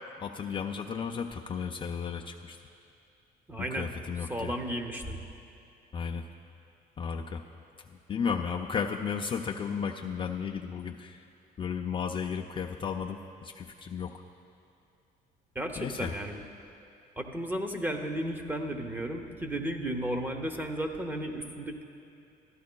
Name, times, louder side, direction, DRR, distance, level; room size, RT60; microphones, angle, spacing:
voice 1, 0.2-2.6 3.6-4.5 5.9-6.2 7.0-7.4 7.9-11.2 11.6-14.2 15.8-16.3, left 6 dB, 30° left, 1 dB, 0.4 m, -34 dB
voice 2, 3.5-3.9 4.3-5.3 15.5-16.4 17.2-21.8, right 1 dB, 10° right, 4 dB, 0.7 m, -34 dB
14.0 x 11.5 x 2.2 m, 2.7 s
cardioid pair, 110°, 17 cm